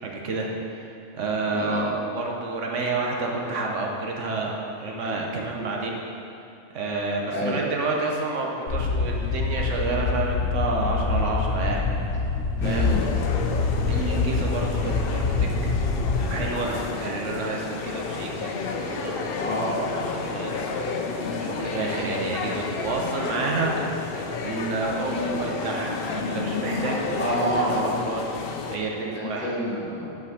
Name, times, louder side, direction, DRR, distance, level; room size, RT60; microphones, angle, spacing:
voice 1, 0.0-0.5 0.8-6.0 6.7-11.8 12.6-12.9 13.9-15.7 16.3-19.3 20.2-20.9 21.1-23.7 24.4-28.2 28.7-29.6, right 3 dB, 75° right, 0 dB, 1.2 m, -29 dB
voice 2, 1.5-1.9 7.3-7.6 12.6-13.0 19.4-20.0 25.1-25.3 27.2-28.0 29.1-30.2, equal, 10° left, -5 dB, 1.0 m, -28 dB
sound 1, 8.7-16.4, left 4 dB, 80° left, 1.1 m, -25 dB
sound 2, 12.6-28.8, left 4 dB, 60° left, 0.7 m, -31 dB
5.9 x 5.1 x 6.5 m, 2.6 s
omnidirectional pair, 1.3 m